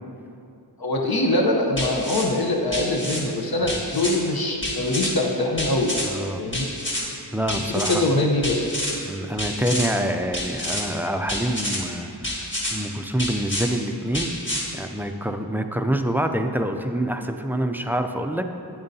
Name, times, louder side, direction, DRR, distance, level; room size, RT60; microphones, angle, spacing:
voice 1, 0.8-6.0 6.4-6.7 7.7-8.7, left 1 dB, 65° left, 0 dB, 0.8 m, -23 dB
sound 1, 1.8-2.3 2.7-3.2 3.7-4.2 4.6-5.1 5.6-6.1 6.5-7.0 7.5-8.0 8.4-8.9 9.4-9.9 10.3-10.8 11.3-11.8 12.2-12.7 13.2-13.7 14.1-14.6, left 1 dB, 30° left, 1.6 m, -28 dB
voice 2, 6.0-6.4 7.3-8.0 9.0-14.3 14.7-18.5, right 1 dB, 5° right, 6 dB, 0.3 m, -26 dB
9.1 x 8.7 x 2.7 m, 2.6 s
wide cardioid pair, 85°, 40 cm